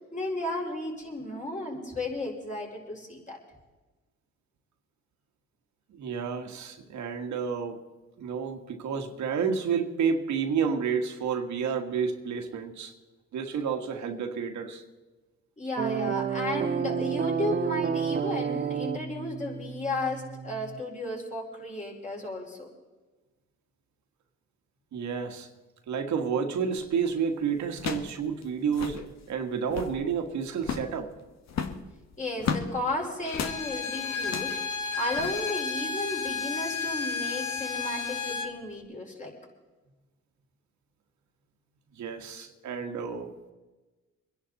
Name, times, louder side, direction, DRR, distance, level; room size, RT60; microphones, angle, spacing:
voice 1, 0.1-3.4 15.6-22.7 32.2-39.3, left 1 dB, 25° left, 4.7 m, -34 dB
voice 2, 5.9-7.8 8.2-12.9 13.3-14.8 24.9-25.5 25.9-31.1 41.9-43.3, right 6 dB, 70° right, 1.7 m, -30 dB
sound 1, 15.8-20.8, right 7 dB, 30° right, 0.6 m, -30 dB
sound 2, 26.8-27.0 27.7-28.2 28.4-28.5 28.7-29.0 29.5-30.0 30.6-31.0 31.5-32.7 33.3-33.6 34.2-34.6 35.1-35.3, left 6 dB, 60° left, 1.6 m, -33 dB
Bowed string instrument, 33.2-38.5, left 5 dB, 85° left, 1.6 m, -32 dB
24.0 x 11.0 x 4.2 m
cardioid pair, 90°, 30 cm